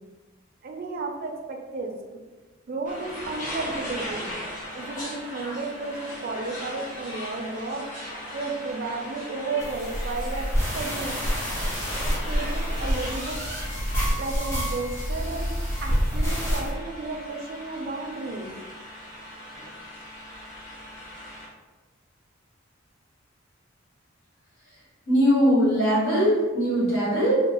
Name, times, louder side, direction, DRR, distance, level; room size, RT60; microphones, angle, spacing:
voice 1, 0.6-1.9 2.7-4.3 4.7-7.9 8.3-11.2 12.3-13.4 14.2-15.5 15.8-18.5 18.9-19.3 19.7-19.8, right 3 dB, 45° right, 2 dB, 0.4 m, -33 dB
sound 1, 2.8-21.5, equal, 40° left, 1.2 m, -38 dB
sound 2, 9.6-16.7, equal, 15° left, 0.8 m, -27 dB
voice 2, 25.1-27.4, equal, 85° left, -7 dB, 1.3 m, -21 dB
2.9 x 2.0 x 2.9 m, 1.3 s
head